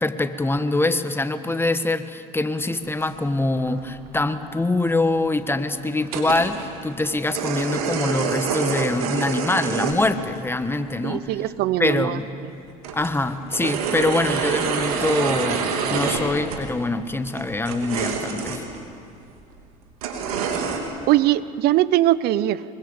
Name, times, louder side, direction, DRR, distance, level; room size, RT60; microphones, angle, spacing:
voice 1, 0.0-11.3 11.8-12.3 12.9-18.6, left 2 dB, 10° left, 10 dB, 1.6 m, -24 dB
sound 1, 3.0-3.1 3.6-3.8 4.1-4.2 4.3-4.4 5.0-5.1 6.0-6.7 7.0-10.0 10.4-10.5 11.8-11.9 12.3-12.4 12.7-16.7 17.3-18.8 19.3-19.4 20.0-20.8, right 6 dB, 85° right, 2.9 m, -26 dB
voice 2, 11.0-12.2 20.4-20.5 21.1-22.6, right 14 dB, 60° right, 17 dB, 0.9 m, -21 dB
25.0 x 23.0 x 7.2 m, 2.4 s
hypercardioid pair, 75°, 18 cm